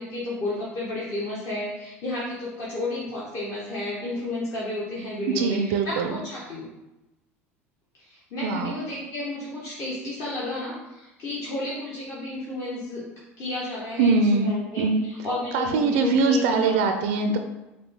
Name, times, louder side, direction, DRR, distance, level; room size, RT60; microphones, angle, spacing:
voice 1, 0.0-6.7 8.0-13.0 13.4-16.8, left 2 dB, 45° left, -6 dB, 1.1 m, -32 dB
voice 2, 5.3-6.2 8.4-8.7 14.0-15.0 15.5-17.4, right 4 dB, 60° right, 6 dB, 0.4 m, -22 dB
5.0 x 2.3 x 3.7 m, 1.0 s
figure-of-eight pair, 75°, 7 cm